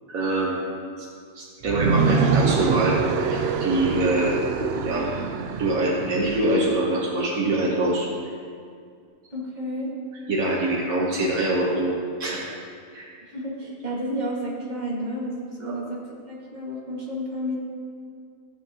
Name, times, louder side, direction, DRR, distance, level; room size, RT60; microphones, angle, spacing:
voice 1, 0.1-0.6 1.0-1.1 1.3-4.3 4.8-5.1 5.6-8.1 10.3-11.9 12.2-12.4 12.9-13.1 15.6-15.8, right 1 dB, 80° right, -4 dB, 1.6 m, -24 dB
sound 1, 1.6-6.7, right 5 dB, 65° right, 0.7 m, -24 dB
voice 2, 9.3-9.9 13.3-16.0 16.2-17.6, equal, 30° right, -5 dB, 2.0 m, -31 dB
14.5 x 7.5 x 2.9 m, 2.2 s
omnidirectional pair, 1.4 m